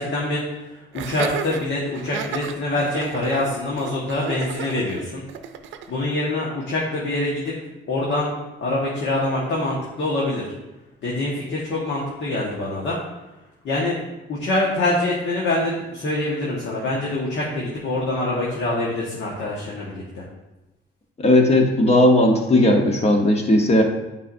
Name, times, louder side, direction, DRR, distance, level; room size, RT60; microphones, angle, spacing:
voice 1, 0.0-5.2 5.9-7.5 7.9-8.3 8.6-10.4 11.0-13.0 13.6-14.0 14.3-20.2, left 2 dB, 65° left, -5 dB, 1.5 m, -25 dB
Laughter, 0.9-5.9, right 7 dB, 75° right, 0.6 m, -33 dB
voice 2, 21.2-23.8, left 1 dB, 30° left, 2 dB, 1.1 m, -16 dB
8.4 x 4.9 x 2.6 m, 1.0 s
cardioid pair, 90°, 20 cm